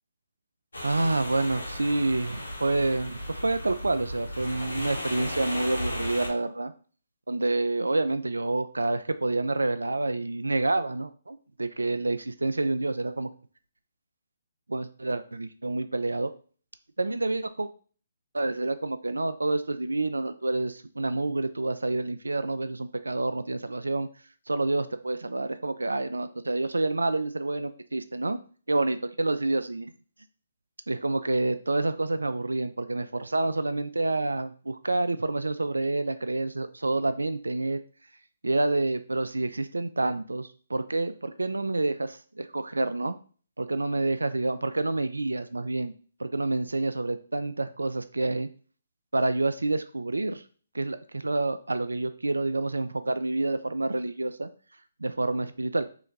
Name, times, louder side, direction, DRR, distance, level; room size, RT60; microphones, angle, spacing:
sound 1, 0.7-6.3, equal, 85° left, 1.2 m, -36 dB
voice 1, 0.8-6.7 7.3-13.3 14.7-16.3 17.0-17.7 18.3-24.1 24.5-28.4 28.7-29.9 30.9-37.8 38.4-43.2 43.6-45.9 46.2-48.5 49.1-50.4 50.7-54.5 55.0-55.9, right 2 dB, 85° right, 11 dB, 0.3 m, -28 dB
3.3 x 2.9 x 3.8 m, 0.41 s
figure-of-eight pair, 145°, 0 cm